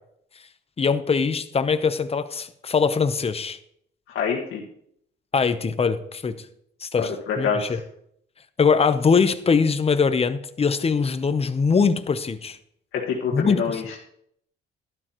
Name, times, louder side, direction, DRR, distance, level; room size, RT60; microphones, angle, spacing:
voice 1, 0.8-3.6 5.3-6.3 6.8-7.1 7.4-7.8 8.6-12.6 13.3-13.8, left 5 dB, 30° left, 0.9 m, -22 dB
voice 2, 4.1-4.6 7.0-7.8 12.9-14.0, left 6 dB, 80° left, 1.8 m, -26 dB
12.0 x 11.5 x 3.1 m
cardioid pair, 90°, 20 cm